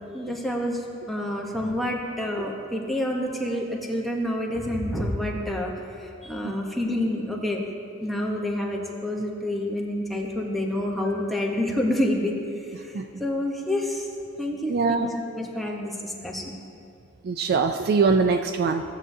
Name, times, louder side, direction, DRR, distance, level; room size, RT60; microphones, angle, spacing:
voice 1, 0.1-0.8 1.1-7.6 8.0-12.4 12.8-14.1 14.4-16.5, left 1 dB, ahead, -2 dB, 0.9 m, -28 dB
voice 2, 14.7-15.1 17.2-18.8, right 4 dB, 45° right, 7 dB, 0.3 m, -22 dB
16.0 x 7.4 x 2.7 m, 2.6 s
head